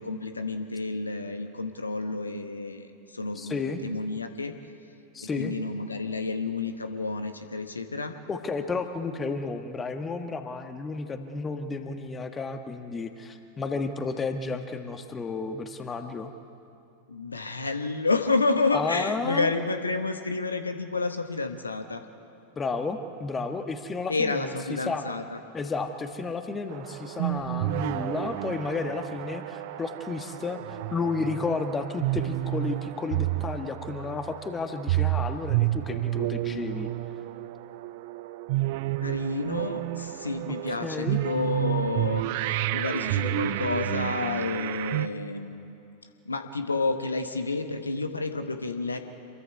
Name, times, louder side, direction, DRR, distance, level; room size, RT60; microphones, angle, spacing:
voice 1, 0.0-4.5 5.2-8.1 17.1-22.0 24.1-25.4 39.0-45.8 46.2-49.0, left 3 dB, 80° left, 8 dB, 1.3 m, -30 dB
voice 2, 3.3-3.8 5.1-5.5 8.3-16.3 18.7-19.5 22.6-25.0 25.5-36.9 40.8-41.2, left 4 dB, 20° left, 7 dB, 1.4 m, -32 dB
sound 1, 26.7-45.1, right 16 dB, 50° right, 0.6 m, -30 dB
27.5 x 22.5 x 4.7 m, 2.7 s
figure-of-eight pair, 90°, 0 cm